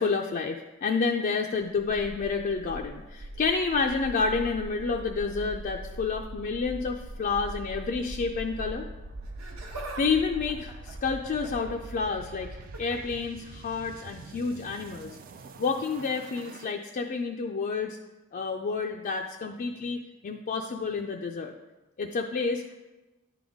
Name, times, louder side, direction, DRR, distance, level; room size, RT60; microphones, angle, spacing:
voice 1, 0.0-8.9 10.0-15.2 15.6-18.0 18.3-21.5 22.0-22.8, left 4 dB, 40° left, 2 dB, 0.3 m, -29 dB
sound 1, 1.8-16.7, right 2 dB, 40° right, 0.4 m, -42 dB
Laughter, 9.2-10.1 10.3-11.7 12.6-13.0 14.3-14.5 15.4-15.5, right 2 dB, 80° right, 1.3 m, -42 dB
10.5 x 3.9 x 3.5 m, 1.1 s
head